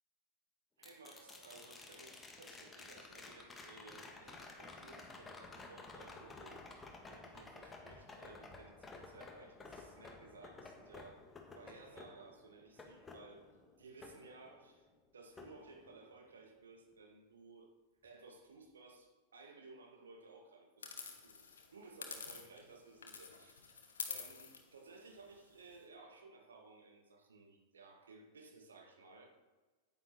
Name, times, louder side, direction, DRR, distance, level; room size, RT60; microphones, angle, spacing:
sound 1, 0.8-14.9 15.4-16.4 18.6-18.7, left 3 dB, 15° left, 1.7 m, -54 dB
voice 1, 0.8-11.3 11.5-13.5 13.8-17.7 18.0-21.4 21.7-23.8 24.1-29.4, right 3 dB, 70° right, 3 dB, 1.8 m, -58 dB
sound 2, 20.8-22.7 23.0-25.8, left 5 dB, 70° left, 1.5 m, -48 dB
9.9 x 9.5 x 4.3 m, 1.3 s
figure-of-eight pair, 90°, 0 cm